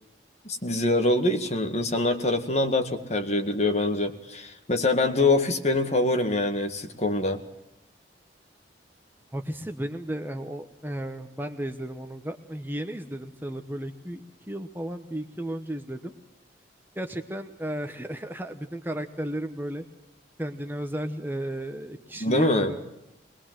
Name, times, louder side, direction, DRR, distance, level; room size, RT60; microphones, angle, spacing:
voice 1, 0.4-7.4 22.2-22.7, left 2 dB, 35° left, 5 dB, 2.0 m, -24 dB
voice 2, 9.3-16.1 17.0-19.8 20.4-22.8, right 1 dB, 10° right, 6 dB, 1.0 m, -34 dB
21.5 x 21.5 x 7.6 m, 0.88 s
head